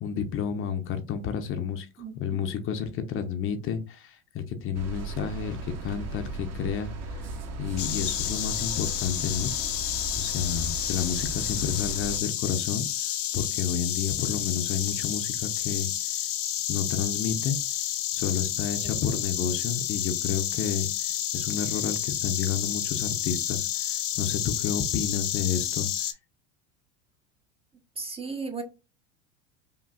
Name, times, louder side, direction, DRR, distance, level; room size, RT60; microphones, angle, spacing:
voice 1, 0.0-1.9 2.2-7.2 7.6-9.5 10.2-12.9 13.3-15.9 16.7-17.6 18.1-20.9 21.3-25.9, left 7 dB, 35° left, 0.6 m, -30 dB
voice 2, 2.0-2.4 18.8-19.0 28.0-28.6, right 4 dB, 15° right, 0.7 m, -36 dB
sound 1, 4.7-12.2, right 3 dB, 45° right, 1.1 m, -37 dB
Insect, 7.8-26.1, left 12 dB, 85° left, 0.7 m, -30 dB
5.1 x 2.6 x 2.4 m
hypercardioid pair, 95°, 36 cm